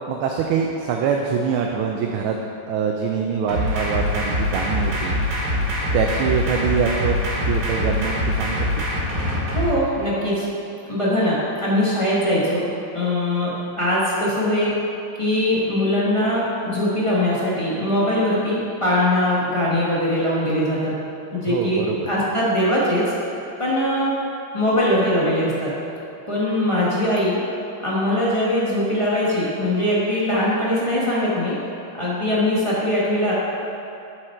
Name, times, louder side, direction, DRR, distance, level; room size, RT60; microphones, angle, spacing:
voice 1, 0.1-2.4 2.7-5.2 5.9-8.9 21.5-22.1, right 6 dB, 80° right, 2 dB, 1.4 m, -24 dB
sound 1, 3.5-9.7, left 1 dB, 50° right, 2.3 m, -23 dB
voice 2, 9.5-10.5 10.9-12.6 12.9-14.7 15.2-20.9 21.3-23.0 23.6-24.1 24.5-25.7 26.3-27.4 27.8-31.6 32.0-33.3, left 1 dB, 20° left, -8 dB, 1.1 m, -21 dB
7.5 x 6.5 x 4.4 m, 2.7 s
omnidirectional pair, 2.3 m